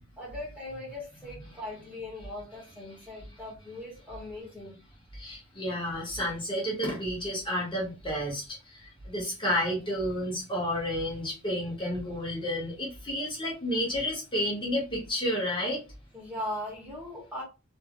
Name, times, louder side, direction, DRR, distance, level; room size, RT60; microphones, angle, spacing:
voice 1, 0.2-4.8 16.1-17.4, left 1 dB, 5° right, 1.2 m, -39 dB
voice 2, 5.1-15.8, equal, 25° left, 1.0 m, -31 dB
2.7 x 2.4 x 2.9 m
head